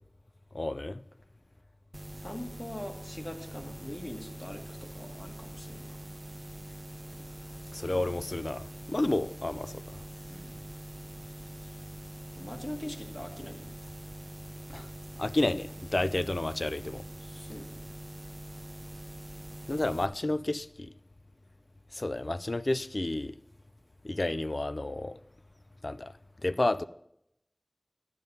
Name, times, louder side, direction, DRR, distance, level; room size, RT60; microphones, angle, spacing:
voice 1, 0.5-1.0 7.7-9.8 14.7-14.9 15.2-17.0 19.7-20.9 21.9-23.4 24.0-25.2 25.8-26.1 26.4-26.8, left 2 dB, 70° left, 0.3 m, -31 dB
sound 1, 1.9-20.1, right 1 dB, 35° right, 0.6 m, -44 dB
voice 2, 2.2-6.0 7.8-8.2 10.2-10.6 12.4-13.7 17.2-17.7, left 1 dB, 55° left, 1.4 m, -42 dB
11.0 x 7.6 x 5.2 m
wide cardioid pair, 40°, 0 cm